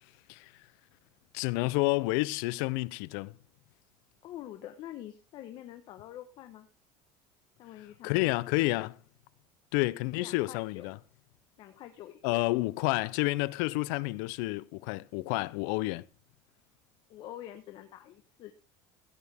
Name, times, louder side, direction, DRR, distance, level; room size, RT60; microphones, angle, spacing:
voice 1, 1.3-3.3 8.0-9.0 9.7-11.0 12.2-16.0, left 21 dB, 80° left, 0.5 m, -29 dB
voice 2, 4.2-6.7 7.6-8.8 10.1-10.9 11.6-12.5 17.1-18.5, left 12 dB, 55° left, 1.1 m, -46 dB
15.5 x 9.3 x 3.5 m
cardioid pair, 135°, 10 cm